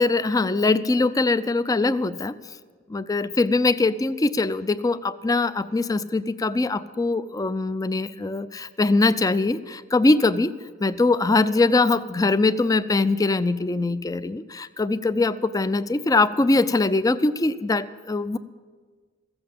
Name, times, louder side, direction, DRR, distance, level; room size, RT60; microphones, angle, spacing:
voice 1, 0.0-2.4 2.9-10.5 10.8-18.4, left 3 dB, 20° left, 14 dB, 0.4 m, -22 dB
14.5 x 7.9 x 8.7 m, 1.5 s
head